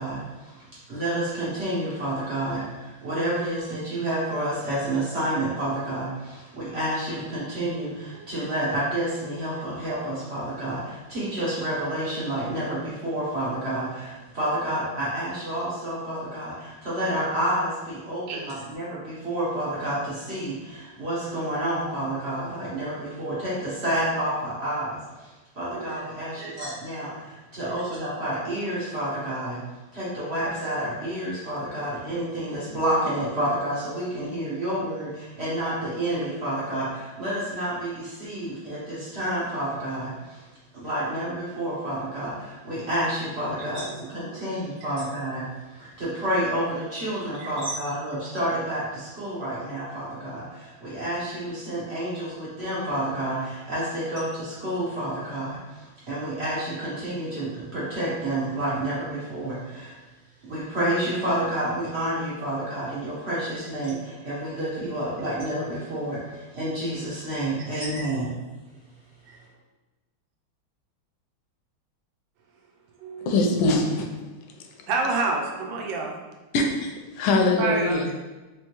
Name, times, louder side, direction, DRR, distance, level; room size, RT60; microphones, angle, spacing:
voice 1, 0.0-29.6 29.9-40.5 40.7-60.0 60.4-68.4, right 1 dB, 45° right, -8 dB, 0.9 m, -29 dB
voice 2, 3.1-3.5 17.2-17.3 18.3-18.5 19.6-19.7 25.7-26.0 26.4-26.6 27.6-27.9 43.6-43.7 44.3-44.4 47.4-47.5 73.0-73.4 74.9-76.2 77.4-78.1, right 4 dB, 75° right, 1 dB, 1.3 m, -30 dB
voice 3, 73.3-74.1 76.5-76.9 77.2-78.0, left 2 dB, 90° left, 3 dB, 1.4 m, -22 dB
3.5 x 3.4 x 2.9 m, 1.1 s
omnidirectional pair, 2.1 m